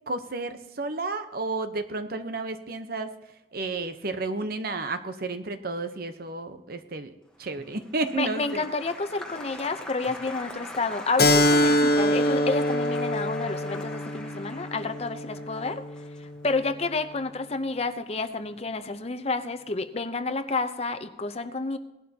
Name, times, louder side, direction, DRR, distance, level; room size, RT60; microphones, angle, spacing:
voice 1, 0.1-3.1 3.5-7.1 7.4-8.7, right 3 dB, 55° right, 9 dB, 0.9 m, -32 dB
Applause, 7.4-17.8 18.1-18.7, left 1 dB, 5° left, 1.2 m, -43 dB
voice 2, 8.2-15.8 16.4-21.8, left 3 dB, 35° left, 9 dB, 0.7 m, -30 dB
Keyboard (musical), 11.2-16.3, left 1 dB, 60° left, 1.1 m, -24 dB
18.0 x 12.0 x 2.9 m, 0.97 s
head